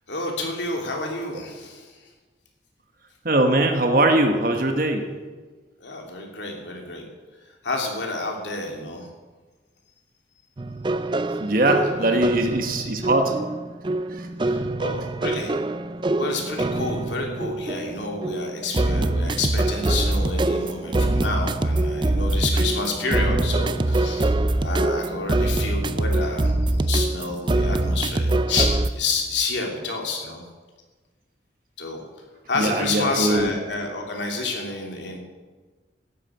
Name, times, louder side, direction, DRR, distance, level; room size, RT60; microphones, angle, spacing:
voice 1, 0.1-2.1 5.8-7.0 7.4-9.1 11.7-12.3 14.4-15.6 16.2-24.3 24.6-30.4 31.8-32.0 32.5-35.2, left 3 dB, 80° left, 1 dB, 2.9 m, -29 dB
voice 2, 3.2-5.0 11.4-13.3 14.2-14.3 32.6-33.5, right 2 dB, 50° right, 4 dB, 1.3 m, -21 dB
sound 1, 10.6-28.9, right 2 dB, 25° right, 0.5 m, -24 dB
12.5 x 8.6 x 8.8 m, 1.3 s
head